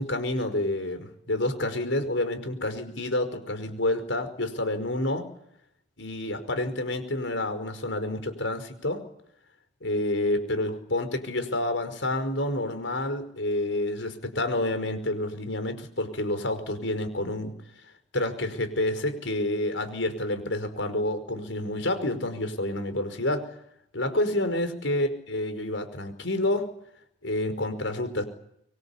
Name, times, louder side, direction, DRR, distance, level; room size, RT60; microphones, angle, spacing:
voice 1, 0.0-5.3 6.0-9.0 9.8-17.5 18.1-23.5 23.9-26.7 27.2-28.2, left 1 dB, 85° left, 9 dB, 5.1 m, -28 dB
25.5 x 23.5 x 8.5 m, 0.74 s
head